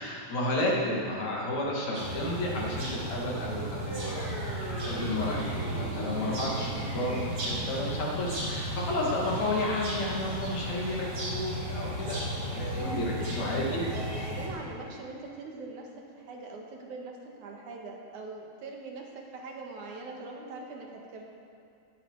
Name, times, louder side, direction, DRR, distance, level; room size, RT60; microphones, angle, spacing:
voice 1, 0.0-4.4 4.8-5.4 5.8-13.7, left 1 dB, 70° left, -4 dB, 3.7 m, -32 dB
sound 1, 1.9-14.5, right 1 dB, 60° right, 5.0 m, -35 dB
sound 2, 3.9-10.9, equal, 15° left, 4.2 m, -40 dB
voice 2, 6.5-6.9 12.6-12.9 13.2-15.9 16.2-21.2, right 3 dB, 85° right, 0 dB, 3.2 m, -42 dB
17.5 x 13.0 x 4.8 m, 2.5 s
omnidirectional pair, 3.3 m